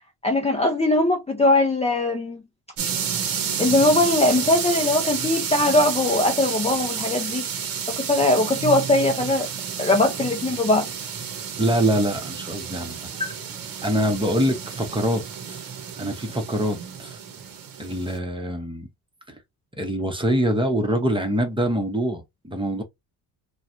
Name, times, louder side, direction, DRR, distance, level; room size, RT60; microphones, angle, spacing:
voice 1, 0.2-2.4 3.6-7.4 7.9-9.5 9.8-10.9 13.2-13.3, left 2 dB, 15° left, 0.6 m, -20 dB
sound 1, 2.8-18.2, right 7 dB, 50° right, 1.0 m, -30 dB
voice 2, 11.6-13.0 13.8-17.2 17.8-18.9 19.3-19.4 19.8-22.8, equal, 10° right, 0.9 m, -24 dB
3.2 x 2.3 x 2.5 m
cardioid pair, 100°, 43 cm